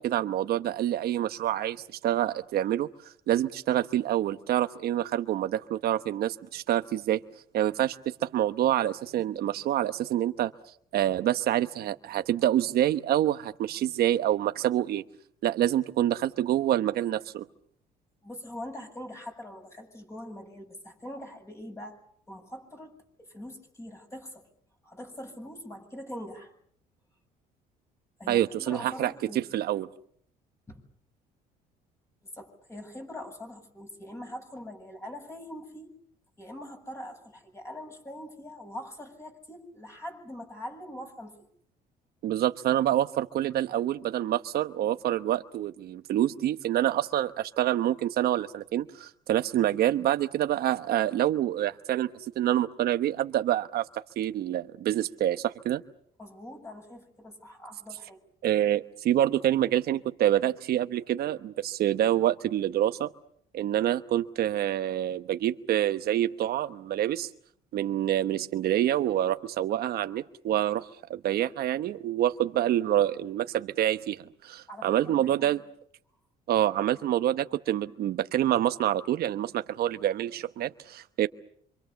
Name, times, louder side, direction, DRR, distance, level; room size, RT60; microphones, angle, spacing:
voice 1, 0.0-2.9 3.3-7.2 7.5-10.5 10.9-15.0 15.4-17.5 28.3-29.9 42.2-52.1 52.4-55.8 58.4-63.1 63.5-67.3 67.7-75.6 76.5-81.3, right 12 dB, 65° right, 10 dB, 1.0 m, -27 dB
voice 2, 18.2-22.0 22.3-24.5 24.8-26.5 28.2-29.4 30.7-30.8 32.3-35.9 36.4-41.5 56.2-58.2 74.7-75.5, left 1 dB, 15° left, 4 dB, 7.5 m, -43 dB
26.5 x 26.0 x 7.0 m, 0.64 s
cardioid pair, 110°, 17 cm